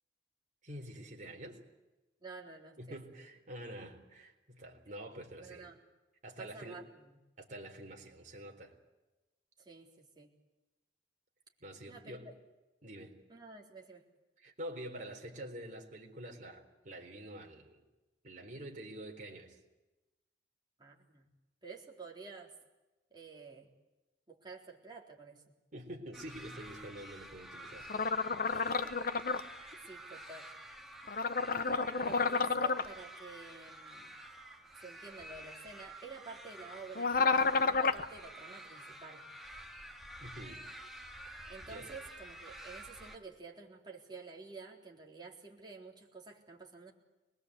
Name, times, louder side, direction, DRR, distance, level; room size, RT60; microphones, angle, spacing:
voice 1, 0.6-1.6 2.8-5.7 6.2-6.8 7.4-8.7 11.6-12.2 12.8-13.2 14.4-17.8 18.2-19.6 25.7-27.9 40.2-40.6 41.7-41.9, right 1 dB, 45° right, 2 dB, 4.0 m, -47 dB
voice 2, 2.2-3.0 5.4-5.8 6.4-7.0 9.6-10.3 11.9-12.3 13.3-14.1 20.8-21.3 21.6-22.5 23.1-23.7 24.3-25.4 28.5-28.9 29.9-30.5 31.6-34.2 34.8-39.2 41.5-46.9, right 4 dB, 25° right, -2 dB, 3.9 m, -50 dB
sound 1, 26.1-43.2, right 1 dB, ahead, 2.2 m, -50 dB
sound 2, 27.9-29.4 31.1-32.9 37.0-38.0, left 4 dB, 55° left, 1.0 m, -30 dB
25.0 x 21.0 x 8.3 m, 1.1 s
head